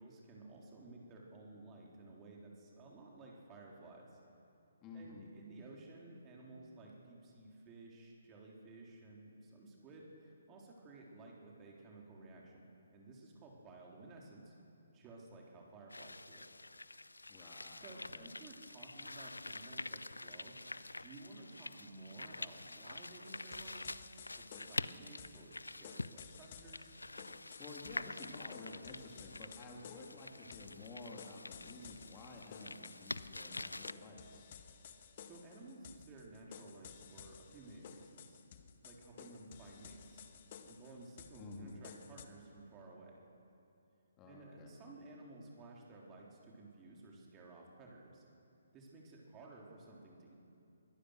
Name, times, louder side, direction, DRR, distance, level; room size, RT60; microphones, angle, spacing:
voice 1, 0.0-4.2 4.9-12.6 12.9-14.5 14.9-16.5 17.8-20.6 21.0-24.0 24.4-26.9 34.8-38.4 38.8-40.2 40.6-43.2 44.3-48.2 48.7-50.3, right 2 dB, 20° right, -2 dB, 3.6 m, -55 dB
voice 2, 4.8-5.3 17.3-18.3 27.6-34.5 41.3-41.7 44.2-44.7, left 2 dB, 20° left, -1 dB, 3.0 m, -52 dB
sound 1, 15.9-33.9, left 2 dB, 80° left, 0.5 m, -47 dB
sound 2, 23.2-42.3, left 8 dB, 40° left, 1.4 m, -56 dB
23.0 x 18.0 x 6.5 m, 2.8 s
figure-of-eight pair, 135°, 0 cm